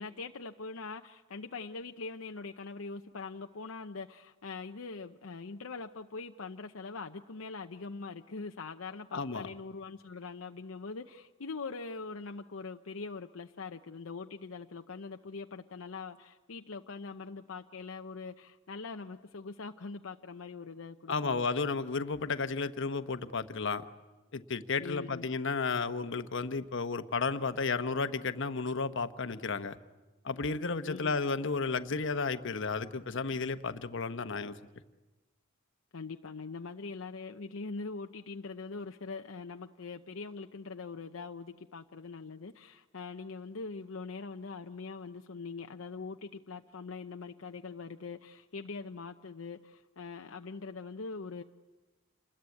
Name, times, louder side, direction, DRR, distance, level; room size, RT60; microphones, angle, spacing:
voice 1, 0.0-21.5 24.8-25.2 30.8-31.2 35.9-51.4, left 4 dB, 80° left, 5 dB, 0.8 m, -42 dB
voice 2, 9.1-9.5 21.1-23.8 24.3-29.8 30.2-34.6, left 4 dB, 65° left, 10 dB, 1.1 m, -33 dB
28.0 x 21.0 x 8.5 m, 1.2 s
head